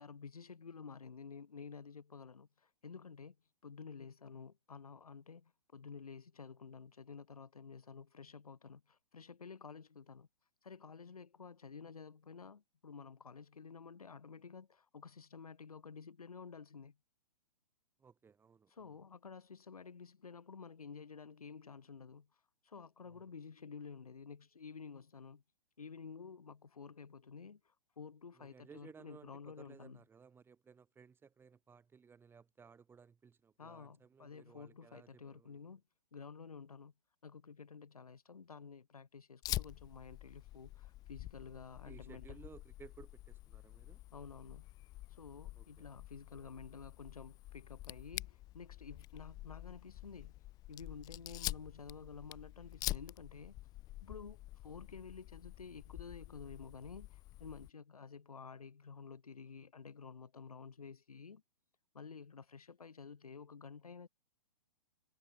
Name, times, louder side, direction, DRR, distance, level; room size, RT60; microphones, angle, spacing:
voice 1, 0.0-3.4 3.6-10.3 10.6-17.0 18.7-22.3 22.6-25.4 25.8-30.0 33.6-35.8 36.1-36.9 37.2-42.4 44.1-44.7 45.1-50.3 50.7-53.6 54.0-61.4 61.9-64.1, left 5 dB, 75° left, 2.4 m, -51 dB
voice 2, 18.0-18.9 23.0-23.2 28.4-35.6 41.8-44.0 45.6-45.9, right 6 dB, 10° right, 2.9 m, -59 dB
Fire, 39.4-57.7, left 17 dB, 20° left, 0.6 m, -47 dB
figure-of-eight pair, 120°, 19 cm